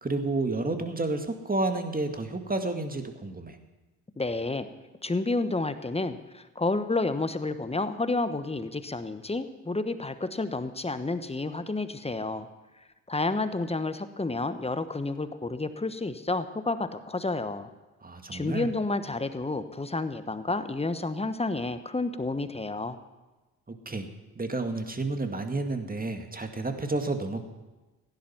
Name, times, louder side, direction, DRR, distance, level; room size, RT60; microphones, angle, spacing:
voice 1, 0.0-3.6 18.0-18.7 23.7-24.1 24.4-27.4, right 2 dB, 20° right, 6 dB, 2.0 m, -30 dB
voice 2, 4.2-4.7 5.0-12.5 13.1-17.7 18.3-23.0, left 3 dB, 15° left, 11 dB, 1.2 m, -30 dB
16.0 x 10.5 x 5.8 m, 1.2 s
hypercardioid pair, 45°, 42 cm